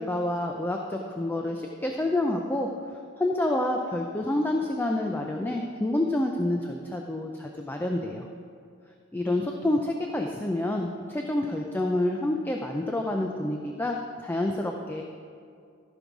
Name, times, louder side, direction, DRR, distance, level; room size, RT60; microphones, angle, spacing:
voice 1, 0.0-8.3 9.1-15.0, left 1 dB, 10° left, 2 dB, 0.5 m, -28 dB
15.0 x 5.4 x 4.7 m, 2.3 s
head